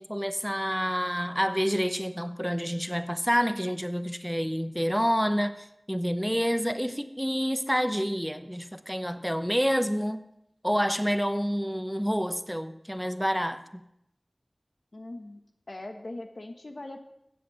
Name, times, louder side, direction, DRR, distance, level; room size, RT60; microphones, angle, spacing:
voice 1, 0.0-10.2 10.6-13.6, equal, ahead, 11 dB, 0.9 m, -28 dB
voice 2, 14.9-15.4 15.7-17.0, left 2 dB, 80° left, 6 dB, 1.3 m, -40 dB
15.0 x 7.7 x 7.1 m, 0.83 s
wide cardioid pair, 40°, 0 cm